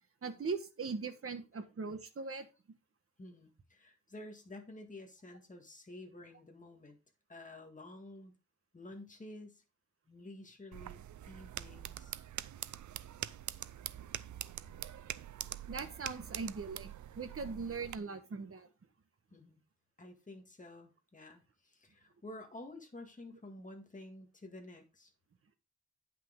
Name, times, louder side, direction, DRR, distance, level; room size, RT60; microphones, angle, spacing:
voice 1, 0.2-2.5 15.7-18.7, right 4 dB, 50° right, 1.3 m, -40 dB
voice 2, 3.2-7.0 7.3-8.3 8.7-9.6 10.1-12.2 19.3-19.6 20.0-25.1, left 1 dB, 25° left, 1.9 m, -51 dB
sound 1, 10.7-18.0, right 11 dB, 75° right, 0.5 m, -44 dB
9.6 x 6.0 x 3.7 m
wide cardioid pair, 135°, 29 cm